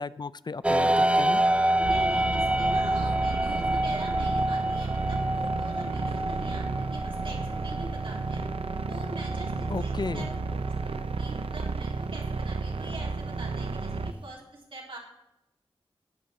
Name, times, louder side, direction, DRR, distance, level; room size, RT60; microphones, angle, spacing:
voice 1, 0.0-1.4 9.7-10.3, left 4 dB, 45° left, 16 dB, 0.4 m, -34 dB
sound 1, 0.6-14.3, right 1 dB, 10° right, 0.6 m, -29 dB
voice 2, 1.8-8.5 8.9-15.0, right 2 dB, 65° right, -2 dB, 3.8 m, -43 dB
sound 2, 1.8-14.1, right 4 dB, 80° right, 0.7 m, -32 dB
11.5 x 9.4 x 5.8 m, 0.87 s
wide cardioid pair, 65°, 10 cm